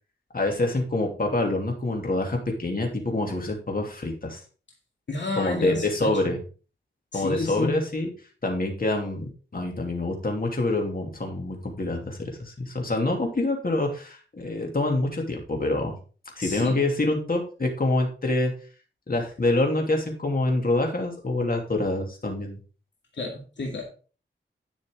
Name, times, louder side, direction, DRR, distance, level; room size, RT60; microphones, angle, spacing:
voice 1, 0.3-4.4 5.3-6.4 7.1-8.1 8.4-16.0 16.4-18.5 19.1-22.6, left 2 dB, 50° left, 2 dB, 2.7 m, -26 dB
voice 2, 5.1-6.4 7.1-7.8 16.4-16.8 23.1-23.8, left 3 dB, 65° left, 0 dB, 2.2 m, -31 dB
11.0 x 6.3 x 3.8 m, 0.37 s
wide cardioid pair, 70°, 20 cm